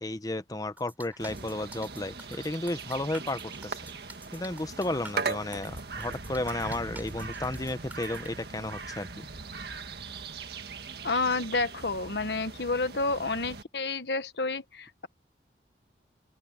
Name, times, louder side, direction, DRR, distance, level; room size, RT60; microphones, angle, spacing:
voice 1, 0.0-3.7 4.3-9.1, left 2 dB, 20° left, 0.8 m, -33 dB
sound 1, 0.8-8.3, right 2 dB, 10° right, 3.6 m, -48 dB
sound 2, 1.2-13.6, right 4 dB, 60° right, 1.8 m, -39 dB
voice 2, 11.0-15.1, left 3 dB, 65° left, 1.3 m, -30 dB
open air
head